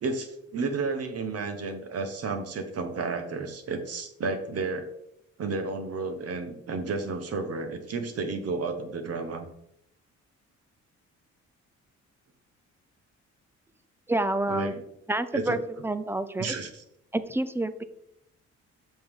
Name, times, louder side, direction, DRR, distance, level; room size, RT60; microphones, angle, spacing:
voice 1, 0.0-4.9 5.4-9.5 14.5-14.8 15.3-15.6 16.4-16.8, right 4 dB, 55° right, 7 dB, 1.2 m, -32 dB
voice 2, 14.1-14.8 15.1-16.5 17.1-17.8, right 2 dB, 10° right, 12 dB, 0.5 m, -28 dB
7.6 x 5.6 x 3.7 m, 0.79 s
cardioid pair, 90°, 30 cm